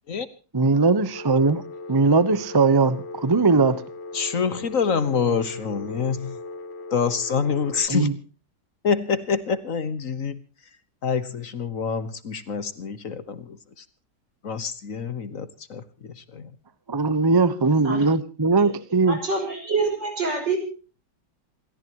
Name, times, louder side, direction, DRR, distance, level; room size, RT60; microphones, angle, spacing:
voice 1, 0.5-1.6 1.9-3.8 7.9-8.2 16.9-19.2, right 3 dB, 20° right, 0.7 m, -20 dB
Telephone, 1.1-7.9, left 3 dB, 85° left, 2.1 m, -38 dB
voice 2, 4.1-6.3 6.9-8.1 8.8-10.4 11.0-13.4 14.4-15.8 16.3-16.5, left 6 dB, 50° left, 1.5 m, -26 dB
voice 3, 19.1-20.6, right 4 dB, 85° right, 7.0 m, -26 dB
28.0 x 14.5 x 3.0 m
omnidirectional pair, 1.9 m